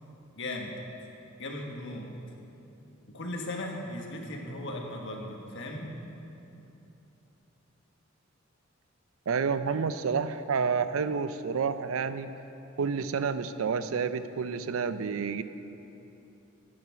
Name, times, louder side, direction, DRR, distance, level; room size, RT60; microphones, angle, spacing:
voice 1, 0.4-0.7 1.4-2.1 3.1-5.9, left 1 dB, 60° left, 1 dB, 1.4 m, -37 dB
voice 2, 9.3-12.3 12.8-15.4, right 5 dB, 80° right, 12 dB, 0.5 m, -29 dB
10.5 x 8.7 x 5.9 m, 2.9 s
head